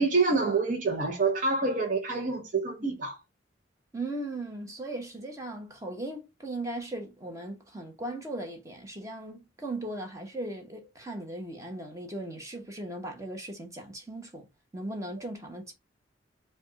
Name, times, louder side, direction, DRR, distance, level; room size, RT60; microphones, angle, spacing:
voice 1, 0.0-3.2 15.2-15.3, right 3 dB, 40° right, 0.8 m, -27 dB
voice 2, 3.9-14.5 14.7-15.7, right 1 dB, 15° right, 1.1 m, -38 dB
5.1 x 2.4 x 4.0 m
head